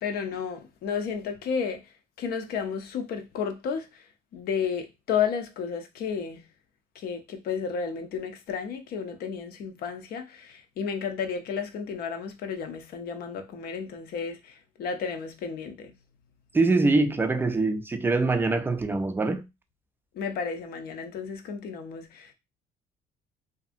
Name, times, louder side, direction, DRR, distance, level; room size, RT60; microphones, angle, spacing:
voice 1, 0.0-4.1 4.3-6.5 6.9-15.9 20.1-22.3, left 6 dB, 65° left, 0.6 m, -32 dB
voice 2, 16.5-19.5, right 3 dB, 10° right, 0.3 m, -24 dB
2.6 x 2.5 x 2.5 m
cardioid pair, 110°, 17 cm